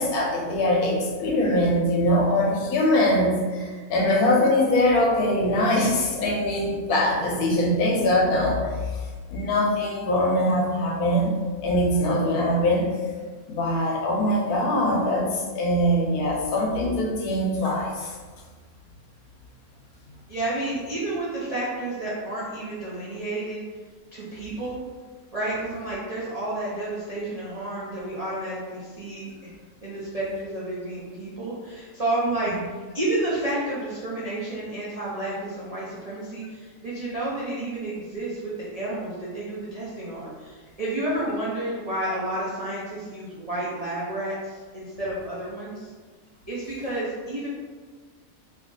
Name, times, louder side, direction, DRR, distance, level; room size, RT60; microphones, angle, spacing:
voice 1, 0.0-12.9 13.5-18.2 32.4-32.6, left 1 dB, 80° left, 0 dB, 1.1 m, -23 dB
voice 2, 20.3-23.6 24.1-24.8 25.3-29.5 29.8-45.9 46.5-47.5, right 1 dB, 55° right, -8 dB, 0.4 m, -30 dB
2.9 x 2.4 x 3.7 m, 1.5 s
omnidirectional pair, 1.5 m